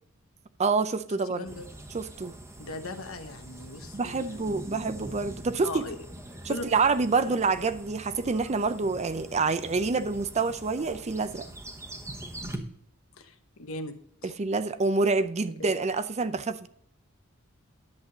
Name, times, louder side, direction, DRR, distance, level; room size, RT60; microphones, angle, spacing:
voice 1, 0.6-1.5 1.9-2.3 3.9-5.8 6.4-11.4 14.2-16.7, right 4 dB, 30° right, 0.5 m, -27 dB
voice 2, 1.3-1.7 2.6-4.8 5.6-6.0 6.5-6.8 7.3-7.4 13.2-14.3, left 2 dB, 80° left, 1.1 m, -39 dB
sound 1, 1.4-12.6, right 1 dB, 15° right, 1.1 m, -43 dB
10.5 x 7.7 x 4.0 m
head